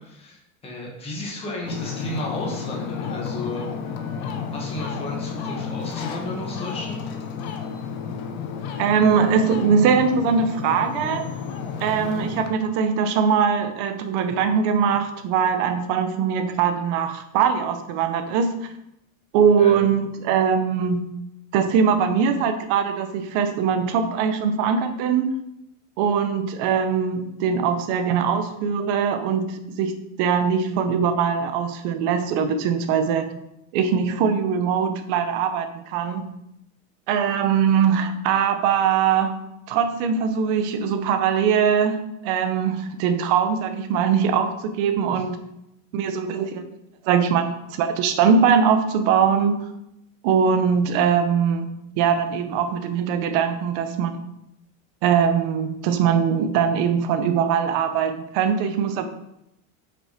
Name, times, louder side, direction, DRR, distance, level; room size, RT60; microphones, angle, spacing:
voice 1, 0.0-3.6 4.5-7.0 19.6-19.8 45.1-45.2, left 1 dB, 15° left, -3 dB, 1.9 m, -33 dB
Ocean, 1.6-12.5, left 6 dB, 45° left, 1.0 m, -32 dB
voice 2, 8.8-11.3 11.8-18.7 19.3-21.1 21.5-25.3 26.0-29.9 30.2-33.3 33.7-36.3 37.1-45.4 45.9-46.6 47.0-47.5 47.8-49.6 50.2-51.7 52.0-54.2 55.0-59.1, right 7 dB, 40° right, 8 dB, 0.9 m, -21 dB
8.7 x 6.2 x 4.3 m, 0.83 s
supercardioid pair, 175°, 42 cm